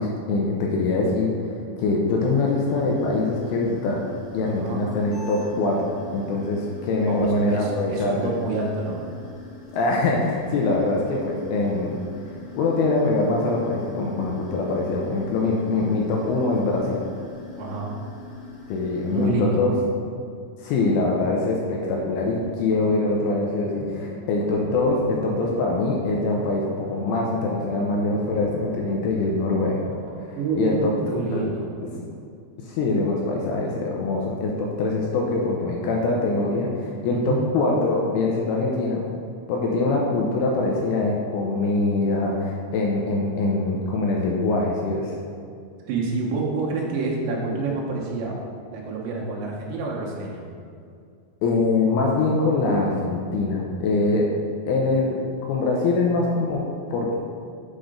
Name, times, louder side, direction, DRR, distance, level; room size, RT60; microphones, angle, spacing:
voice 1, 0.0-4.0 4.3-8.3 9.7-12.0 12.5-17.0 18.7-19.7 20.6-29.9 30.5-30.9 31.3-31.4 32.6-39.0 39.5-45.2 51.4-54.3 54.7-55.2 55.5-56.6 56.9-57.1, left 3 dB, 80° left, -1 dB, 2.4 m, -23 dB
sound 1, 2.2-19.3, left 3 dB, 60° left, 2.2 m, -43 dB
voice 2, 4.5-4.8 7.0-9.0 17.6-18.0 19.1-19.6 30.4-31.7 37.1-37.5 45.9-48.4 48.7-50.4, right 3 dB, 90° right, -2 dB, 3.3 m, -28 dB
sound 2, 21.5-32.1, right 1 dB, 75° right, 2.1 m, -42 dB
8.0 x 3.9 x 5.0 m, 2.3 s
omnidirectional pair, 5.0 m